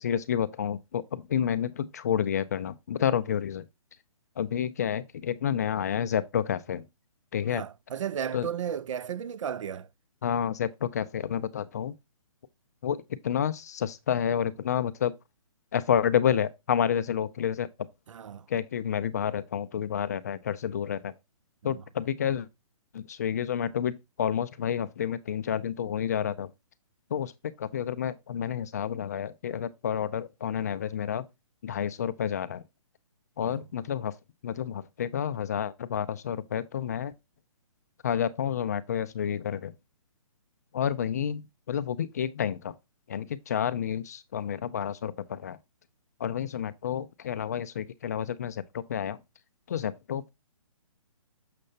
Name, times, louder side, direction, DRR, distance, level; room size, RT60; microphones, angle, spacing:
voice 1, 0.0-3.7 4.4-6.9 7.3-7.6 8.3-8.5 10.2-12.0 12.8-15.1 15.7-17.7 18.5-21.1 21.6-22.5 22.9-26.5 27.1-31.2 31.6-32.6 33.4-34.1 34.4-37.1 38.0-39.8 40.7-42.7 43.1-45.6 46.2-49.2 49.7-50.3, left 9 dB, 30° left, 0.4 m, -29 dB
voice 2, 7.5-9.9 18.1-18.5 21.6-21.8 33.4-33.6, right 8 dB, 60° right, 0.5 m, -34 dB
6.6 x 6.2 x 2.7 m
hypercardioid pair, 160°, 18 cm